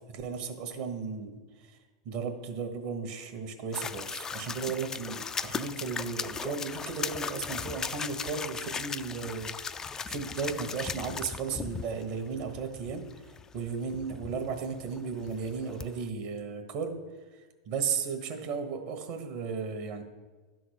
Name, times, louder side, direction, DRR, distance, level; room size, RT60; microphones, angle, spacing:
voice 1, 0.1-1.8 2.0-13.0 13.5-16.9 17.3-17.4 17.7-20.0, right 5 dB, 60° right, 6 dB, 1.3 m, -35 dB
sound 1, 3.7-16.1, left 6 dB, 20° left, 0.3 m, -38 dB
11.0 x 3.9 x 6.5 m, 1.3 s
hypercardioid pair, 105°, 3 cm